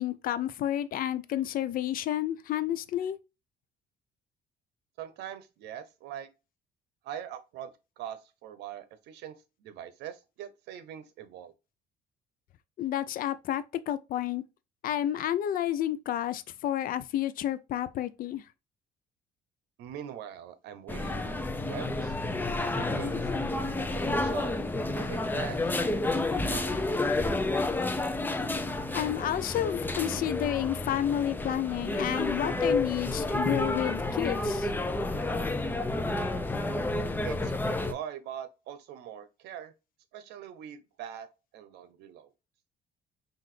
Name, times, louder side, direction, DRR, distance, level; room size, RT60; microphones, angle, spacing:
voice 1, 0.0-3.2 12.8-14.4 14.8-18.4 28.9-34.7, left 11 dB, 55° left, 0.5 m, -30 dB
voice 2, 5.0-6.3 7.0-11.5 19.8-22.2 22.7-23.6 23.9-24.6 24.8-26.0 26.3-27.0 37.2-39.7 40.1-42.3, right 10 dB, 80° right, 0.7 m, -43 dB
sound 1, 20.9-37.9, left 2 dB, 10° left, 0.5 m, -30 dB
5.8 x 2.5 x 3.1 m
cardioid pair, 110°, 17 cm